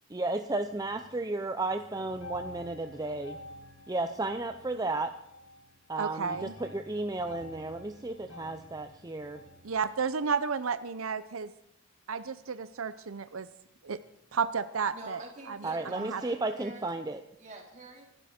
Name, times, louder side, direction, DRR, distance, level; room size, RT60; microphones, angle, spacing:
voice 1, 0.1-3.4 3.9-5.1 5.9-9.4 15.6-17.2, right 2 dB, 20° right, 7 dB, 0.7 m, -33 dB
sound 1, 0.6-1.4 1.7-10.1, left 2 dB, 75° left, 5.4 m, -49 dB
voice 2, 6.0-6.5 9.6-11.5 12.1-13.5 13.8-14.0 14.3-15.2 15.5-15.6 16.0-16.2, right 5 dB, 85° right, 12 dB, 0.7 m, -32 dB
voice 3, 14.9-16.9 17.4-18.0, right 3 dB, 35° right, -1 dB, 4.2 m, -46 dB
25.5 x 12.5 x 4.4 m, 0.79 s
head